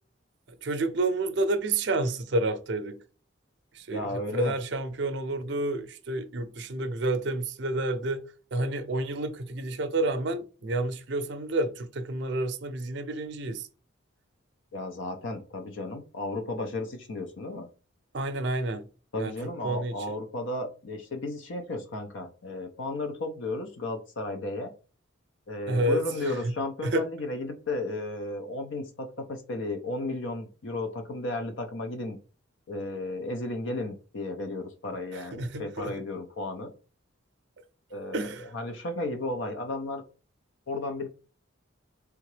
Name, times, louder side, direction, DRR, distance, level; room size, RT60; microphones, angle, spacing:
voice 1, 0.6-3.0 3.7-8.2 8.5-13.7 18.1-18.9 19.2-19.3 19.6-20.2 25.7-26.0 26.8-27.1 35.1-35.9 38.1-38.5, right 2 dB, 55° right, 0.5 m, -29 dB
voice 2, 3.9-4.5 14.7-17.7 19.1-24.7 25.5-32.2 32.7-36.7 37.9-40.0 40.7-41.1, left 2 dB, 65° left, 0.6 m, -34 dB
3.7 x 3.4 x 3.2 m
head